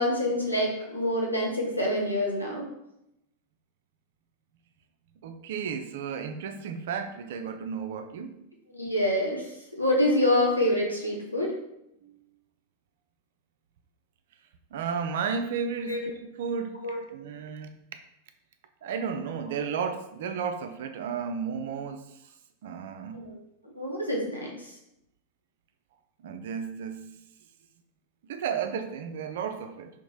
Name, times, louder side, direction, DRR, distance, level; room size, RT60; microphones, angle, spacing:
voice 1, 0.0-2.7 8.7-9.5 9.8-11.5 15.9-16.0 16.8-17.0 23.1-24.5, left 1 dB, 85° left, -2 dB, 0.8 m, -26 dB
voice 2, 5.2-8.3 12.0-12.1 14.7-16.8 17.1-17.8 18.8-22.0 22.6-23.2 26.2-27.1 28.2-29.9, right 6 dB, 55° right, 7 dB, 0.3 m, -33 dB
2.9 x 2.5 x 3.8 m, 0.84 s
figure-of-eight pair, 90°, 0 cm